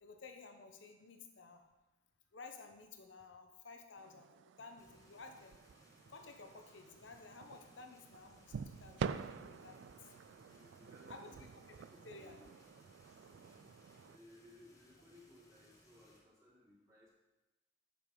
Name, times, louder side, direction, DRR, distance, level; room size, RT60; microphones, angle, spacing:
voice 1, 0.0-1.7 2.3-5.6 6.1-9.8 11.1-11.3 11.7-12.4, left 4 dB, 70° left, 5 dB, 0.9 m, -54 dB
sound 1, 4.0-14.2, right 6 dB, 70° right, 0.3 m, -48 dB
sound 2, 4.8-16.2, equal, 20° left, 1.1 m, -66 dB
voice 2, 10.2-11.6 11.9-12.5 13.4-17.1, left 1 dB, 15° right, -8 dB, 2.9 m, -63 dB
7.6 x 5.4 x 5.3 m, 1.1 s
head